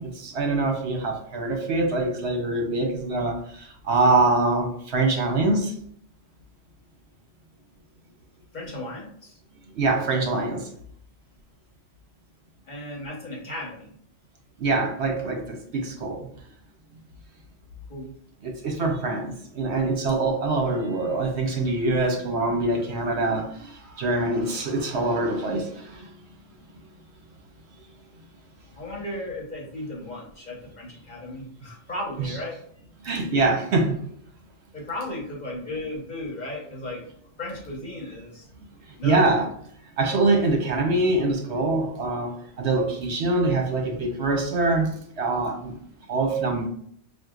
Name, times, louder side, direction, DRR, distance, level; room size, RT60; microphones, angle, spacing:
voice 1, 0.0-5.7 9.8-10.7 14.6-16.3 18.4-26.1 33.0-34.0 39.0-39.4 40.0-44.9 45.2-45.7 46.1-46.7, right 2 dB, 70° right, 2 dB, 1.1 m, -24 dB
voice 2, 8.5-9.4 12.7-13.9 17.9-18.1 28.7-32.6 34.7-37.0 37.4-38.5 39.0-39.3, left 1 dB, 40° left, -3 dB, 1.2 m, -35 dB
6.2 x 2.5 x 2.4 m, 0.65 s
omnidirectional pair, 1.2 m